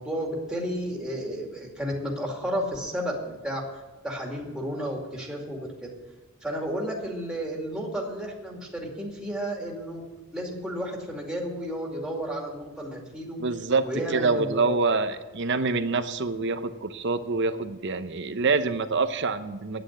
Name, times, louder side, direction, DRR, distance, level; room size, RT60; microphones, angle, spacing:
voice 1, 0.0-3.1 3.4-3.6 4.0-5.7 6.4-10.0 10.3-13.4 13.8-14.8, equal, 5° right, -2 dB, 2.4 m, -32 dB
voice 2, 13.4-13.8 14.1-19.8, right 4 dB, 55° right, 10 dB, 0.8 m, -26 dB
9.6 x 9.0 x 9.4 m, 1.2 s
head